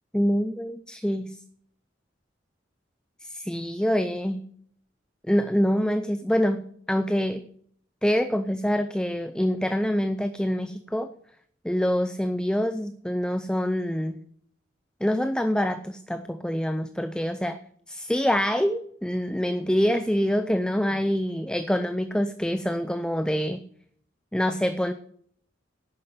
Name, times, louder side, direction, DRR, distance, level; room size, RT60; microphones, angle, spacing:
voice 1, 0.1-1.4 3.2-4.5 5.3-7.5 8.0-11.1 11.6-14.2 15.0-17.6 17.9-23.6 24.3-24.9, equal, 5° left, 10 dB, 0.6 m, -25 dB
11.0 x 9.5 x 6.9 m, 0.62 s
head